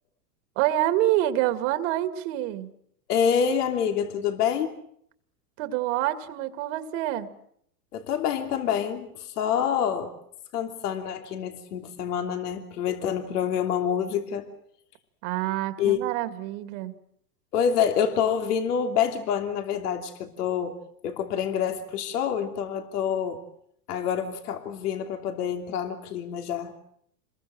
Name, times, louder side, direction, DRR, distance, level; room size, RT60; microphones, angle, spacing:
voice 1, 0.6-2.7 5.6-7.3 15.2-16.9, right 14 dB, 50° right, 10 dB, 2.2 m, -27 dB
voice 2, 3.1-4.7 7.9-10.1 10.5-14.5 15.8-16.0 17.5-20.8 21.0-23.4 23.9-26.8, left 8 dB, 70° left, 5 dB, 3.1 m, -27 dB
27.0 x 21.5 x 7.8 m, 0.70 s
supercardioid pair, 145°, 48 cm